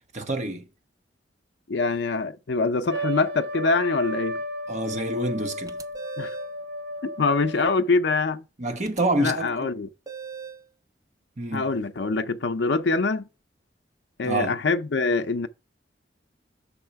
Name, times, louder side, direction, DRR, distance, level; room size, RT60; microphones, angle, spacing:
voice 1, 0.1-0.7 4.7-5.8 8.6-9.8 11.4-11.7 14.2-14.5, right 2 dB, 40° right, 1.1 m, -27 dB
voice 2, 1.7-4.4 6.2-6.3 7.2-8.4 9.2-9.9 11.5-13.2 14.2-15.5, left 3 dB, 70° left, 0.6 m, -24 dB
Trumpet, 2.9-7.9, equal, 75° right, 1.4 m, -33 dB
sound 1, 5.7-6.6 8.8-9.0 10.1-10.7, right 6 dB, 20° right, 0.6 m, -39 dB
6.4 x 4.3 x 5.7 m
head